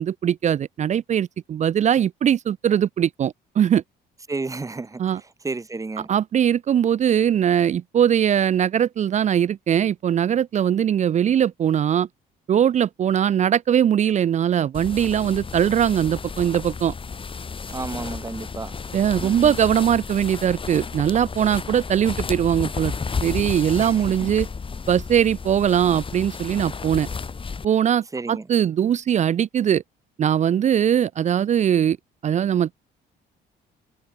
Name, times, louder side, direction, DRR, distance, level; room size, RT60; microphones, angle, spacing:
voice 1, 0.0-3.8 5.0-5.2 6.1-12.1 12.5-16.9 18.9-22.9 23.2-24.5 24.9-27.1 27.6-29.8 30.2-32.0 32.2-32.7, right 9 dB, 40° right, 0.5 m, -21 dB
voice 2, 4.3-5.0 5.4-6.1 17.7-18.7 19.2-19.5 23.8-24.1 28.1-28.5, right 3 dB, 20° right, 2.5 m, -31 dB
sound 1, 14.7-27.7, left 5 dB, 30° left, 4.0 m, -32 dB
cardioid pair, 105°, 18 cm